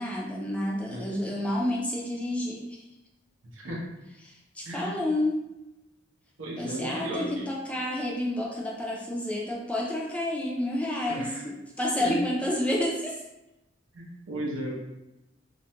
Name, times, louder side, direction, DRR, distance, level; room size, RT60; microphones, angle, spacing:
voice 1, 0.0-2.8 4.2-5.4 6.6-13.2, left 1 dB, 5° left, -3 dB, 0.4 m, -30 dB
voice 2, 0.9-1.3 3.5-3.9 4.6-5.1 6.4-7.5 11.1-11.5 12.0-12.1 13.9-14.7, right 1 dB, 70° right, -3 dB, 0.7 m, -35 dB
2.4 x 2.1 x 2.7 m, 0.94 s
head